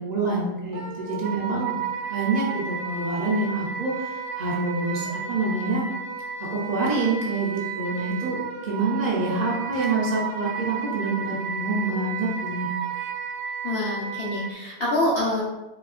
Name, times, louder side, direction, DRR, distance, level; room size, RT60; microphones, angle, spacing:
voice 1, 0.0-1.8 2.1-5.8 6.4-12.7, right 3 dB, 45° right, -5 dB, 0.5 m, -27 dB
Wind instrument woodwind instrument, 0.7-14.5, right 6 dB, 65° right, 0.9 m, -33 dB
voice 2, 13.6-15.4, left 1 dB, 55° left, -6 dB, 0.8 m, -25 dB
4.2 x 2.8 x 2.4 m, 1.0 s
omnidirectional pair, 1.4 m